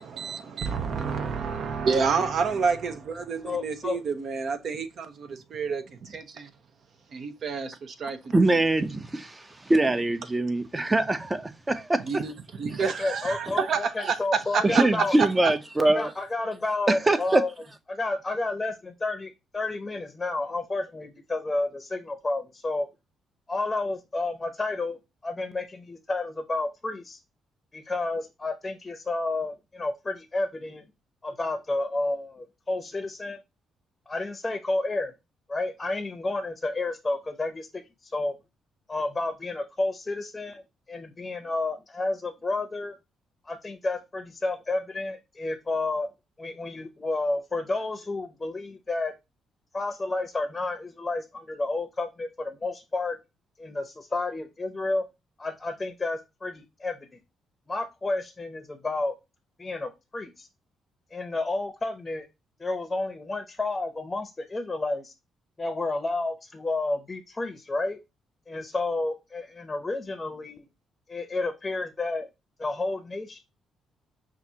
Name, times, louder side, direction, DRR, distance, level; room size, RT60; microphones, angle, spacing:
voice 1, 0.0-6.5 7.1-8.3 12.1-14.1 14.5-14.8 15.4-15.5, right 5 dB, 60° right, 0.8 m, -29 dB
voice 2, 3.4-4.0 13.0-15.2 15.8-17.5 17.9-22.9 23.5-27.2 27.7-30.8 31.2-33.4 34.1-35.1 35.5-38.4 38.9-40.6 40.9-43.0 43.5-46.1 46.4-49.1 49.7-53.2 53.6-55.0 55.4-57.2 57.7-59.1 59.6-60.5 61.1-62.3 62.6-65.1 65.6-68.0 68.5-70.6 71.1-72.3 72.6-73.4, left 2 dB, 20° left, 0.7 m, -31 dB
voice 3, 8.3-12.2 14.6-16.1 16.9-17.4, right 2 dB, 20° right, 0.7 m, -23 dB
5.7 x 2.5 x 2.8 m
cardioid pair, 90°, 0 cm